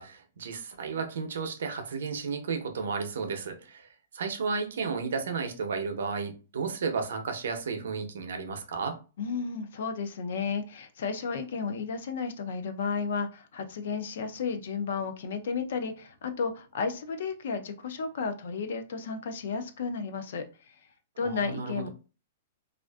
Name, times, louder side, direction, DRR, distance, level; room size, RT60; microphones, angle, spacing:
voice 1, 0.0-9.0 21.2-21.9, right 5 dB, 80° right, 0.6 m, -33 dB
voice 2, 9.2-20.8 21.2-21.9, left 5 dB, 60° left, 0.4 m, -33 dB
2.4 x 2.4 x 2.2 m
hypercardioid pair, 175°, 0 cm